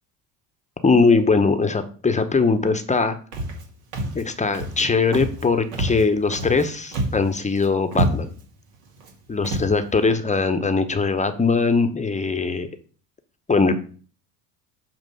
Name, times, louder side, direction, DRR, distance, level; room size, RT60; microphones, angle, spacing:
voice 1, 0.8-3.2 4.1-8.3 9.3-12.7 13.5-13.8, left 4 dB, 15° left, 9 dB, 0.8 m, -21 dB
Walk footsteps, 3.3-3.6 3.9-4.2 4.5-4.8 5.1-5.4 5.7-6.6 6.9-7.3 7.6-7.7 7.9-8.4 9.0-9.1 9.4-9.7, right 1 dB, 70° right, 2.1 m, -26 dB
6.9 x 2.9 x 5.5 m, 0.42 s
hypercardioid pair, 70°, 47 cm